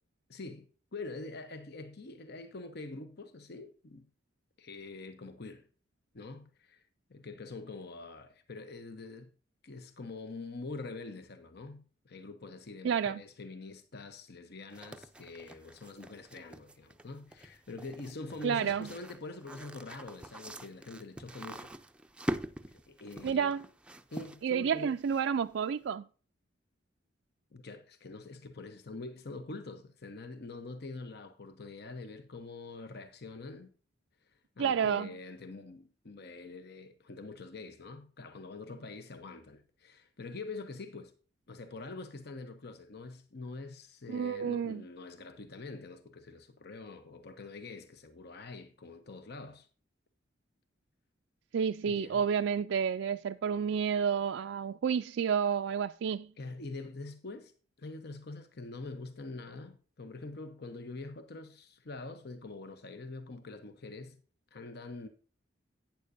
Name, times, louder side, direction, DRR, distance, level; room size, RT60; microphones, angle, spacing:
voice 1, 0.3-4.1 4.6-5.7 6.1-6.8 7.1-9.3 9.6-21.7 22.7-23.5 24.1-24.9 27.5-33.7 34.6-41.1 41.5-49.7 51.8-52.2 56.4-57.5 57.8-64.2 64.5-65.1, left 3 dB, 60° left, 0.9 m, -45 dB
voice 2, 12.8-13.2 18.4-18.9 23.2-23.6 24.4-26.0 34.6-35.1 44.1-44.8 51.5-56.3, right 7 dB, 70° right, 0.4 m, -30 dB
sound 1, 14.7-25.5, equal, 5° right, 0.5 m, -44 dB
11.5 x 9.3 x 2.6 m
head